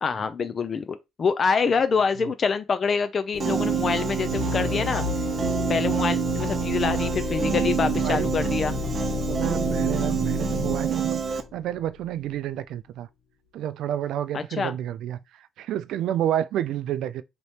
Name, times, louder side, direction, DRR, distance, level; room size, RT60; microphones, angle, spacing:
voice 1, 0.0-5.0 5.7-8.7 14.3-14.7, left 5 dB, 45° left, 0.4 m, -26 dB
sound 1, 3.3-12.0, left 4 dB, 85° left, 1.3 m, -31 dB
Piano, 3.4-11.4, right 7 dB, 45° right, 0.8 m, -27 dB
voice 2, 8.0-8.3 9.3-11.2 11.5-13.1 13.5-17.2, right 11 dB, 85° right, 0.4 m, -29 dB
3.3 x 3.0 x 4.2 m
cardioid pair, 90°, 0 cm